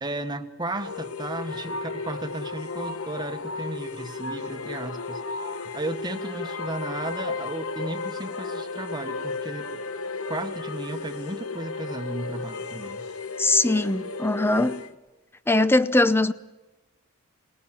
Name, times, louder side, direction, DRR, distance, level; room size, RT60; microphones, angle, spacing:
voice 1, 0.0-9.8 10.3-13.0, right 2 dB, 20° right, 1.2 m, -34 dB
sound 1, 0.7-14.9, left 3 dB, 85° left, 1.1 m, -34 dB
voice 2, 13.4-14.8 15.5-16.3, left 2 dB, 10° left, 0.6 m, -21 dB
20.0 x 19.0 x 7.4 m
head